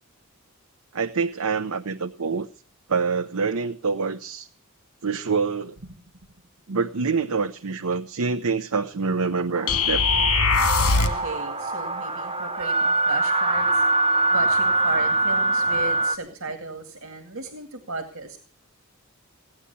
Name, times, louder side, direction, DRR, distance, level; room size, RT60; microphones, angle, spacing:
voice 1, 0.9-2.5 2.9-4.5 5.0-5.8 6.7-10.0, right 5 dB, 90° right, 7 dB, 0.8 m, -26 dB
sound 1, 9.5-16.2, right 3 dB, 25° right, 1.4 m, -23 dB
sound 2, 9.7-11.3, left 4 dB, 80° left, 2.1 m, -21 dB
voice 2, 10.2-18.4, right 2 dB, 65° right, 6 dB, 2.3 m, -36 dB
17.0 x 10.0 x 7.0 m, 0.41 s
head